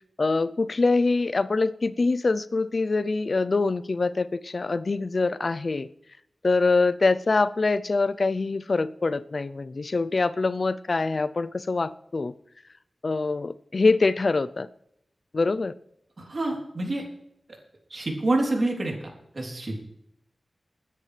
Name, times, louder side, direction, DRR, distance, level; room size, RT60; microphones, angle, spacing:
voice 1, 0.2-5.9 6.4-12.3 13.0-14.7 15.3-15.7, left 3 dB, 55° left, 15 dB, 0.5 m, -24 dB
voice 2, 16.2-17.0 17.9-19.9, right 2 dB, 55° right, 0 dB, 3.4 m, -28 dB
21.0 x 9.9 x 3.4 m, 0.77 s
wide cardioid pair, 65°, 0 cm